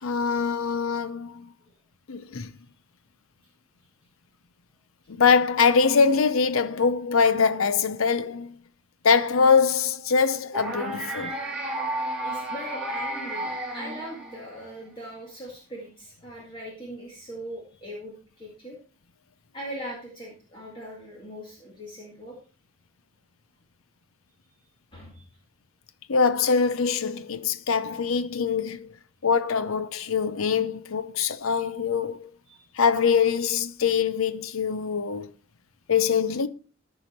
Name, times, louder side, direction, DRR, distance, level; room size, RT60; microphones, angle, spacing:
voice 1, 0.0-1.5 2.1-2.5 5.1-8.5 9.0-11.4 26.1-28.9 29.2-32.3 32.8-35.3 35.9-36.5, left 5 dB, 80° left, 0.6 m, -23 dB
sound 1, 10.5-14.7, right 1 dB, 5° right, 2.6 m, -32 dB
voice 2, 12.2-18.8 19.5-22.4 24.9-25.3 32.5-32.7, equal, 25° left, 2.0 m, -40 dB
13.0 x 4.9 x 4.4 m
head